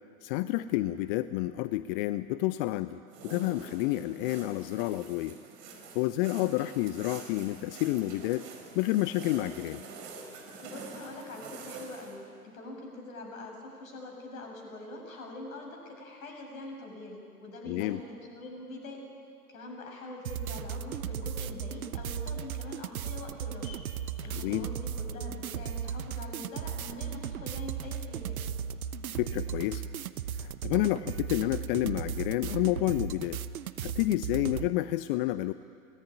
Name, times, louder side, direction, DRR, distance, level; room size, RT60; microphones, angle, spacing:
voice 1, 0.2-5.4 5.9-8.5 8.8-9.8 17.6-18.0 24.3-24.7 29.1-29.8 30.4-33.4 33.8-35.5, left 16 dB, 40° left, 14 dB, 0.6 m, -29 dB
sound 1, 3.1-12.1, right 4 dB, 45° right, 5.2 m, -46 dB
voice 2, 10.6-19.0 19.5-23.8 24.2-28.4, left 2 dB, 65° left, 2 dB, 7.2 m, -44 dB
sound 2, 20.2-34.7, right 8 dB, 70° right, 1.0 m, -36 dB
24.0 x 18.5 x 9.9 m, 2.4 s
figure-of-eight pair, 95°, 45 cm